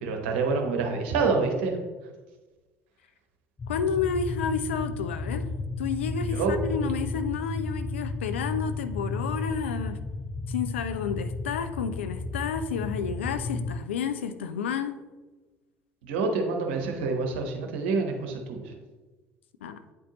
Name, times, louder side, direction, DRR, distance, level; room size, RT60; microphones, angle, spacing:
voice 1, 0.0-1.7 6.3-6.5 16.0-18.7, right 4 dB, 70° right, 3 dB, 1.0 m, -27 dB
sound 1, 3.6-13.8, left 3 dB, 20° left, 0.5 m, -33 dB
voice 2, 3.7-5.5 5.8-10.0 10.5-15.0 19.6-19.9, left 6 dB, 80° left, 10 dB, 0.4 m, -30 dB
9.1 x 4.4 x 2.9 m, 1.2 s
hypercardioid pair, 60°, 6 cm